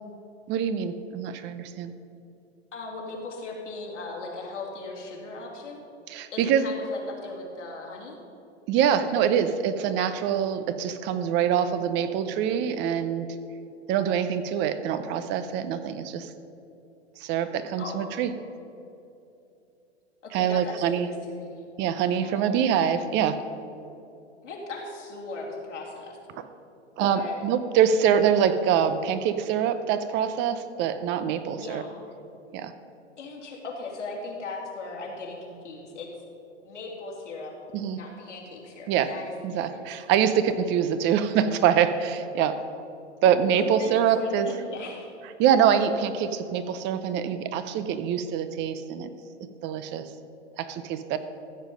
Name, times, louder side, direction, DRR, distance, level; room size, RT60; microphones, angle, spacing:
voice 1, 0.5-1.9 6.1-6.7 8.7-13.3 13.9-16.3 17.2-18.3 20.3-21.1 21.8-23.4 27.0-31.8 32.5-32.7 37.7-38.0 38.9-39.1 39.4-42.6 43.2-44.5 45.4-49.1 49.6-50.1 50.6-51.2, right 8 dB, 30° right, 11 dB, 0.6 m, -24 dB
voice 2, 2.7-5.8 6.3-8.2 17.8-18.0 20.2-21.6 22.1-22.6 24.4-26.2 26.9-27.5 31.6-31.9 33.2-36.1 36.6-37.5 38.0-39.9 43.6-45.1, left 3 dB, 85° left, -2 dB, 2.8 m, -38 dB
14.0 x 7.3 x 5.2 m, 2.7 s
hypercardioid pair, 115°, 35 cm